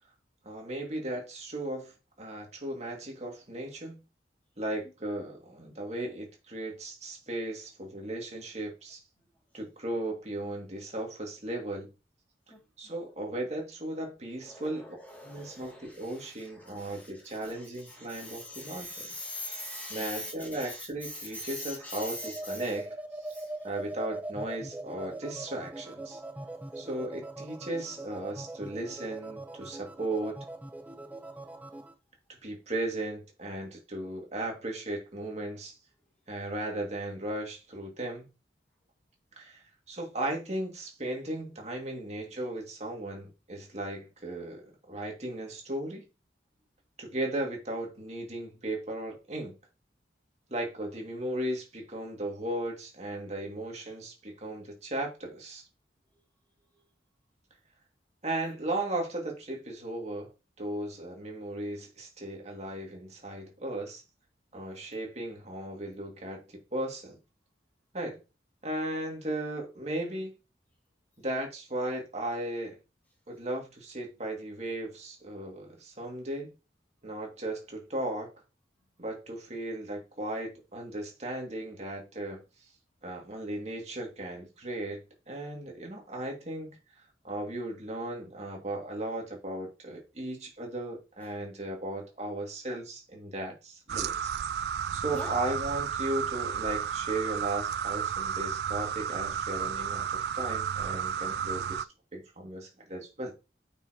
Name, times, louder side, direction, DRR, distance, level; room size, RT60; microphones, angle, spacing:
voice 1, 0.4-4.0 4.6-9.0 9.5-11.9 12.8-14.9 15.2-19.1 19.9-22.9 23.2-23.3 23.6-26.2 26.7-30.4 32.4-35.8 36.3-38.3 39.4-46.0 47.0-49.5 50.5-55.6 58.2-60.3 60.6-64.0 64.5-67.2 67.9-68.2 68.6-70.3 71.2-72.8 73.3-76.5 77.0-78.3 79.0-82.4 83.0-86.8 87.2-94.3 94.9-101.9 102.1-103.3, right 1 dB, 40° right, 2.4 m, -36 dB
voice 2, 12.5-12.9 14.4-22.8 23.3-23.7 94.9-95.4, left 1 dB, 10° left, 2.6 m, -43 dB
sound 1, 22.1-31.9, right 2 dB, 10° right, 0.6 m, -41 dB
sound 2, 93.9-101.8, right 8 dB, 60° right, 0.3 m, -32 dB
9.1 x 5.7 x 3.0 m
head